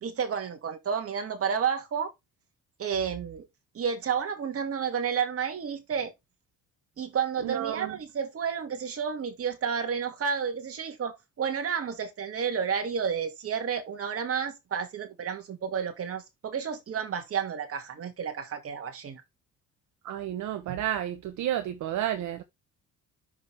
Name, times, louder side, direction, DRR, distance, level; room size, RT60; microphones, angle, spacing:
voice 1, 0.0-2.1 2.8-3.5 3.7-6.1 7.0-19.2, right 7 dB, 45° right, 2.2 m, -31 dB
voice 2, 7.4-7.9 20.0-22.4, right 11 dB, 65° right, 1.0 m, -31 dB
6.5 x 5.1 x 3.5 m
cardioid pair, 85°, 31 cm